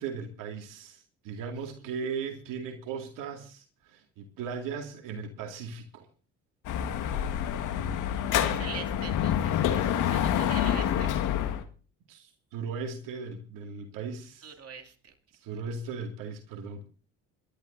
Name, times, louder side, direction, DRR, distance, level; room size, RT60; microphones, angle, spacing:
voice 1, 0.0-6.1 12.1-14.5 15.4-16.8, right 5 dB, 65° right, 3 dB, 2.3 m, -37 dB
Dog / Motorcycle, 6.6-11.6, left 10 dB, 60° left, 1.7 m, -27 dB
voice 2, 8.2-11.1 14.4-15.1, right 7 dB, 40° right, 4 dB, 2.8 m, -43 dB
27.5 x 12.0 x 2.7 m, 0.38 s
hypercardioid pair, 65°, 35 cm